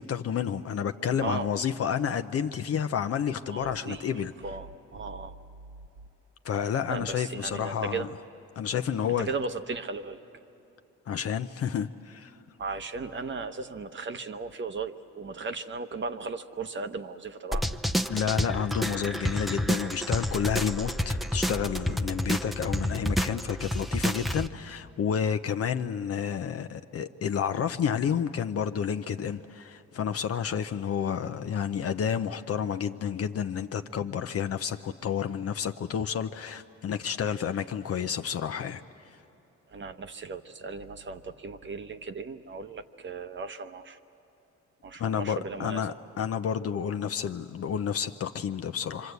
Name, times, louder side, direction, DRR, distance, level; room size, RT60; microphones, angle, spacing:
voice 1, 0.0-4.3 6.4-8.1 8.6-9.3 11.1-12.4 18.1-38.8 45.0-49.1, left 8 dB, 50° left, 8 dB, 0.7 m, -30 dB
voice 2, 1.2-1.7 3.5-5.4 6.9-8.1 9.2-10.2 12.6-17.7 21.9-22.0 39.7-44.0 44.8-45.9, right 4 dB, 40° right, 8 dB, 1.0 m, -36 dB
sound 1, 17.5-24.5, equal, ahead, 0.7 m, -29 dB
26.0 x 25.5 x 8.2 m, 2.9 s
cardioid pair, 90°, 30 cm